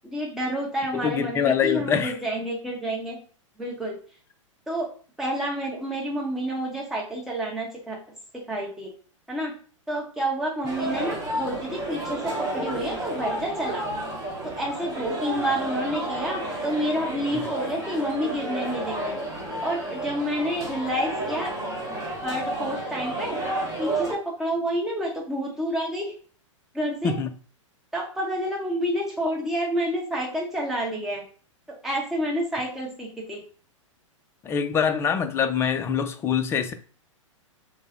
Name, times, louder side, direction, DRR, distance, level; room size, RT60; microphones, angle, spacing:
voice 1, 0.1-3.2 3.6-3.9 4.7-4.9 5.2-8.0 8.5-8.9 9.3-9.5 9.9-12.2 12.5-13.8 14.6-19.1 19.6-21.5 22.2-23.4 23.8-26.1 26.7-27.2 27.9-31.2 31.8-33.4, equal, ahead, 1.0 m, -29 dB
voice 2, 0.9-2.2 17.3-17.5 27.0-27.3 34.4-36.7, left 7 dB, 15° left, 0.4 m, -24 dB
sound 1, 10.7-24.1, right 1 dB, 20° right, 1.2 m, -31 dB
3.3 x 2.1 x 3.5 m
hypercardioid pair, 110°, 17 cm